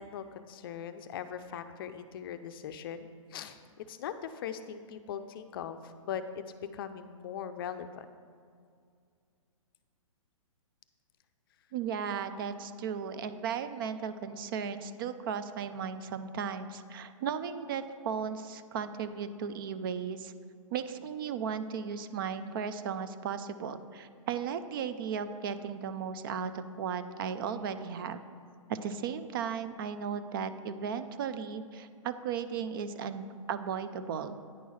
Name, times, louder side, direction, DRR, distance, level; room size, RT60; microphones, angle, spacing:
voice 1, 0.0-8.1, left 8 dB, 40° left, 10 dB, 0.5 m, -40 dB
voice 2, 11.7-20.3 20.7-28.2 28.7-34.4, right 7 dB, 40° right, 11 dB, 0.5 m, -36 dB
9.5 x 4.6 x 5.6 m, 2.2 s
hypercardioid pair, 140°, 17 cm